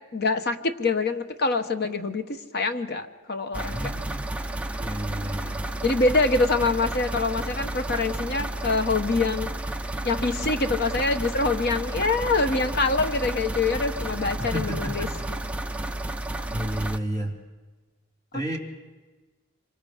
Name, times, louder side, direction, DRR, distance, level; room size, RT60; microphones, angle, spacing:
voice 1, 0.0-3.9 5.8-9.5 10.0-15.1, left 3 dB, 45° left, 8 dB, 1.0 m, -25 dB
sound 1, 3.5-17.0, right 1 dB, 5° right, 0.6 m, -32 dB
voice 2, 3.7-4.3 4.8-5.7 14.4-15.3 16.5-17.4 18.3-18.6, equal, 20° left, 0 dB, 2.8 m, -32 dB
26.0 x 24.0 x 5.0 m, 1.3 s
head